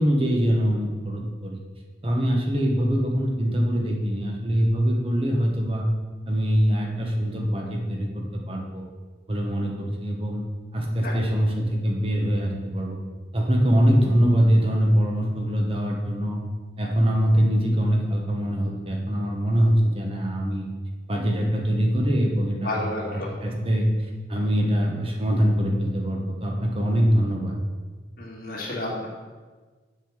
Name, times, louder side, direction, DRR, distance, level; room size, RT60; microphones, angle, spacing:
voice 1, 0.0-1.6 2.0-5.9 6.3-8.8 9.3-10.4 10.7-13.0 13.3-16.4 16.8-20.7 21.1-22.8 23.1-23.9 24.3-27.6, equal, 30° right, 0 dB, 1.3 m, -23 dB
voice 2, 22.6-23.3 28.2-29.1, left 2 dB, 55° left, -3 dB, 2.6 m, -31 dB
7.7 x 5.7 x 7.3 m, 1.4 s
head